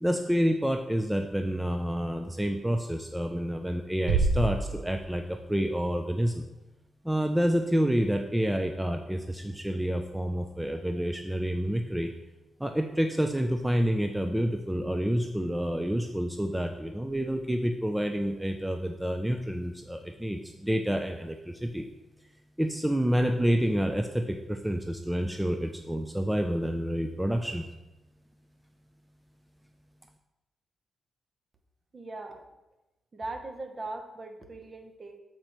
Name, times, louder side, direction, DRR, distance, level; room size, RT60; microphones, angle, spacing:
voice 1, 0.0-6.5 7.0-12.1 12.6-21.9 22.6-27.6, equal, 5° right, 5 dB, 0.4 m, -28 dB
Bass drum, 4.1-5.5, right 3 dB, 85° right, 0.6 m, -28 dB
voice 2, 31.9-32.4 33.1-35.2, right 2 dB, 40° right, 5 dB, 0.9 m, -39 dB
8.0 x 4.4 x 3.1 m, 1.0 s
cardioid pair, 75°, 0 cm